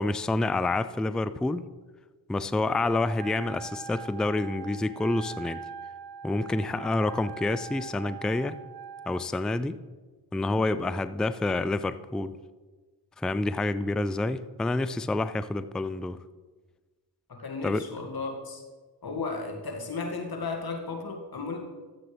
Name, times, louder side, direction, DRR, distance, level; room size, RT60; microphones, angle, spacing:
voice 1, 0.0-1.6 2.3-5.6 6.2-8.6 9.1-9.8 10.3-12.3 13.2-16.2 17.6-17.9, left 2 dB, ahead, 14 dB, 0.3 m, -28 dB
Wind instrument woodwind instrument, 3.1-9.3, right 7 dB, 50° right, 0.6 m, -42 dB
voice 2, 17.3-18.6 19.0-21.6, left 4 dB, 45° left, 2 dB, 2.2 m, -34 dB
13.5 x 7.5 x 3.4 m, 1.3 s
supercardioid pair, 40°, 48 cm